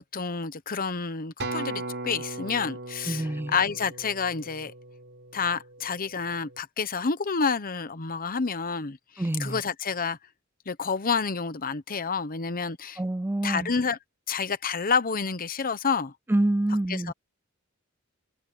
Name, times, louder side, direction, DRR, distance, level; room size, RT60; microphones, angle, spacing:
voice 1, 0.0-4.7 5.3-9.0 9.4-10.2 10.7-13.0 13.4-14.0 14.3-16.1 16.9-17.1, left 5 dB, 40° left, 1.0 m, -29 dB
Acoustic guitar, 1.4-5.8 6.5-6.6, right 2 dB, 55° right, 6.3 m, -37 dB
voice 2, 3.1-3.5 9.2-9.6 13.0-13.7 16.3-17.1, right 1 dB, 10° right, 0.4 m, -26 dB
open air
head